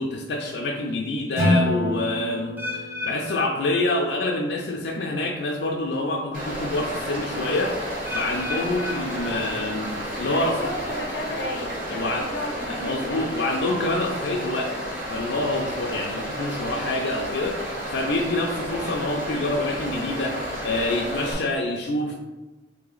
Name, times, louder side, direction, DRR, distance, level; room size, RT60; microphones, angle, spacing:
voice 1, 0.0-10.6 11.9-12.3 12.7-14.7 15.1-17.6 17.9-22.1, left 2 dB, 65° left, 0 dB, 0.4 m, -27 dB
Acoustic guitar / Strum, 1.4-4.5, left 1 dB, 85° right, 1.3 m, -27 dB
sound 1, 2.6-4.6 4.8-5.3 5.9-6.0 8.0-10.0 10.3-10.8 11.4-11.5, left 2 dB, 10° right, 0.4 m, -35 dB
Stream, 6.3-21.3, equal, 50° right, 1.1 m, -32 dB
voice 2, 10.2-13.3, left 1 dB, 90° left, 2 dB, 0.7 m, -34 dB
3.2 x 2.9 x 3.8 m, 1.1 s
head